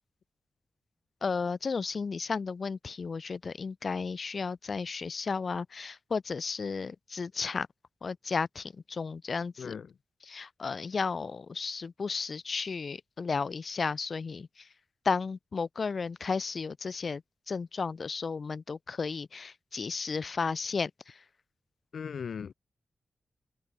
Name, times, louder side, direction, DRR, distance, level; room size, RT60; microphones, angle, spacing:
voice 1, 1.2-7.7 8.0-9.8 10.2-14.7 15.0-21.2, left 5 dB, 50° left, 0.9 m, -33 dB
voice 2, 21.9-22.5, left 6 dB, 70° left, 1.1 m, -37 dB
wide cardioid pair, 100°, 0 cm